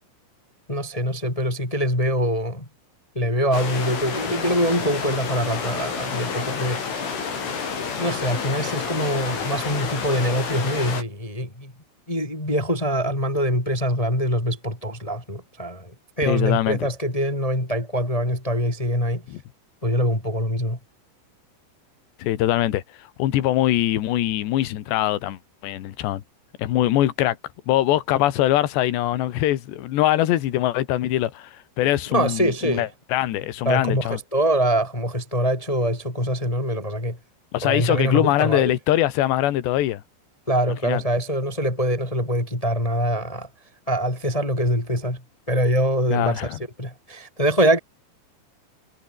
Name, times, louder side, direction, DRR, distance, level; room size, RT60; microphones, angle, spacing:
voice 1, 0.7-2.7 3.1-6.8 7.1-7.3 7.8-11.7 12.1-19.2 19.8-20.8 32.1-32.9 33.6-37.2 37.6-38.8 40.5-43.5 43.9-45.2 45.5-47.8, equal, 10° left, 3.6 m, -24 dB
sound 1, 3.5-11.0, left 5 dB, 90° left, 9.1 m, -29 dB
voice 2, 16.3-16.8 19.3-19.4 22.2-26.2 26.6-27.4 27.7-34.2 37.5-40.0 40.8-41.0 46.1-46.6, left 14 dB, 70° left, 3.7 m, -22 dB
omnidirectional pair, 5.4 m